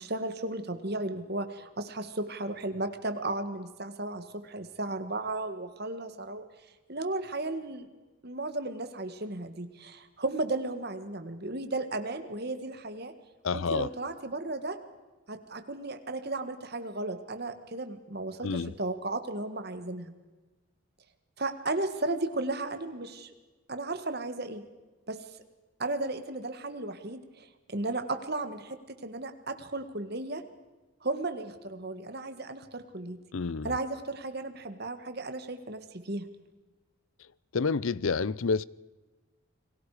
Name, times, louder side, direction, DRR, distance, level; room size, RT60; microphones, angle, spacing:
voice 1, 0.0-6.5 6.9-7.9 8.2-13.1 13.5-14.8 15.3-20.1 21.4-23.3 23.7-24.6 25.1-25.2 25.8-30.4 31.0-33.2 33.6-36.3, right 2 dB, 50° right, 1.7 m, -35 dB
voice 2, 13.4-13.9 18.4-18.7 33.3-33.8 37.5-38.6, left 4 dB, 70° left, 0.6 m, -29 dB
29.5 x 21.0 x 5.0 m
head